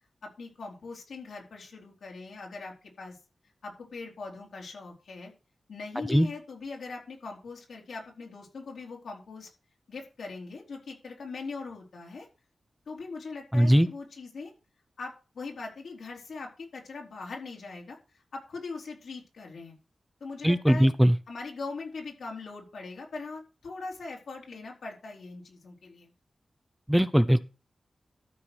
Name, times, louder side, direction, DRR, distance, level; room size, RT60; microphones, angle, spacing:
voice 1, 0.2-3.2 3.6-5.3 5.7-9.5 9.9-12.3 12.9-14.5 15.0-19.7 20.2-20.9 21.3-26.1, left 4 dB, 90° left, 3.8 m, -41 dB
voice 2, 13.5-13.9 20.4-21.2 26.9-27.4, equal, 5° right, 0.7 m, -20 dB
13.0 x 4.7 x 6.1 m
cardioid pair, 65°, 0 cm